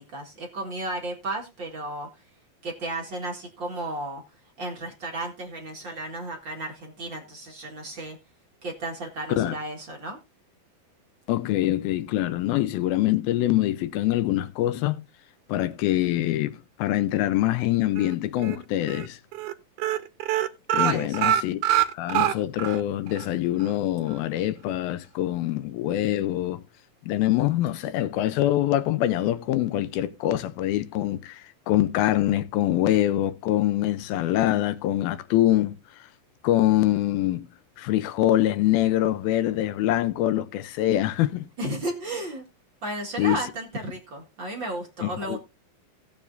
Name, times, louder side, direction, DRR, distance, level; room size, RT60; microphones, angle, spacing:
voice 1, 0.0-2.1 2.6-4.2 4.6-8.2 8.6-10.2 20.8-21.3 41.6-42.4 42.8-45.4, right 2 dB, 40° right, 1.8 m, -33 dB
voice 2, 11.3-15.0 15.5-19.2 20.7-21.6 21.9-26.6 27.0-35.8 36.4-37.4 37.8-41.5 43.2-43.4 45.0-45.4, left 14 dB, 80° left, 2.6 m, -24 dB
sound 1, 18.0-18.6 18.9-19.1 19.3-19.5 19.8-22.8 23.2-23.3 23.6-23.7, right 12 dB, 70° right, 2.2 m, -24 dB
18.0 x 7.1 x 2.6 m
omnidirectional pair, 4.3 m